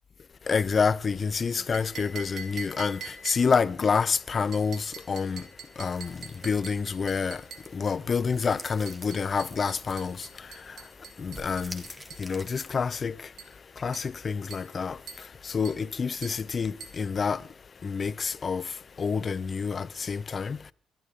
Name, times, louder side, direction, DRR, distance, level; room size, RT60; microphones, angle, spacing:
voice 1, 0.5-3.0 3.3-5.4 5.8-6.1 6.4-7.4 7.7-10.2 11.2-11.8 12.2-13.1 13.8-15.0 15.5-17.4 17.8-18.6 19.0-20.6, left 5 dB, 40° left, 0.7 m, -27 dB
sound 1, 1.7-3.7 4.5-7.8 8.9-12.3 13.4-13.6 13.9-14.2 14.5-14.8 15.1-15.3 15.6-15.9 16.2-16.5 16.8-17.1, right 6 dB, 65° right, 3.0 m, -45 dB
sound 2, 5.9-12.8, right 1 dB, 10° right, 2.5 m, -49 dB
22.0 x 12.5 x 3.8 m
cardioid pair, 90°, 0 cm